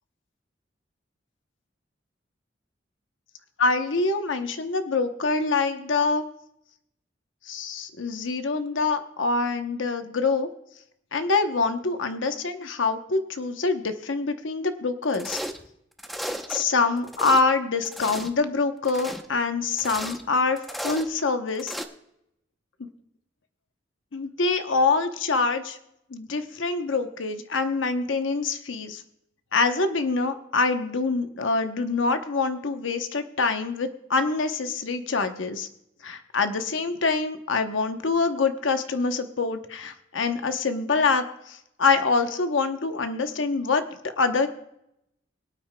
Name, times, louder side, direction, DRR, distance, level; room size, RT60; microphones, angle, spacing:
voice 1, 3.6-6.3 7.5-10.5 11.1-15.4 16.5-21.7 22.8-22.9 24.1-25.8 26.1-29.0 29.5-35.7 36.0-44.5, left 4 dB, 90° left, 7 dB, 0.9 m, -25 dB
sound 1, 15.1-15.7 16.0-16.6 17.0-17.4 17.8-18.4 18.8-19.3 19.7-20.3 20.6-21.1 21.6-21.9, equal, ahead, 0.7 m, -34 dB
23.0 x 9.0 x 2.2 m, 0.80 s
head